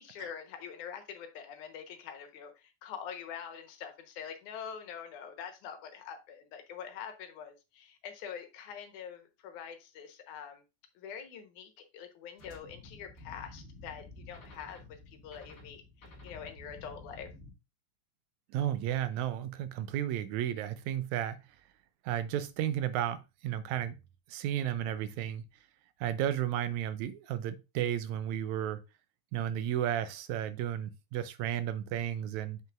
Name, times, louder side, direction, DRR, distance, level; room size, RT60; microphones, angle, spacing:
voice 1, 0.0-10.6 11.0-17.3, left 8 dB, 85° left, 2.5 m, -45 dB
sound 1, 12.4-17.5, left 2 dB, 30° left, 2.1 m, -51 dB
voice 2, 18.5-21.4 22.1-24.0 24.3-25.4 26.0-28.8 29.3-32.6, right 11 dB, 80° right, 1.9 m, -33 dB
7.5 x 5.9 x 2.4 m
omnidirectional pair, 3.4 m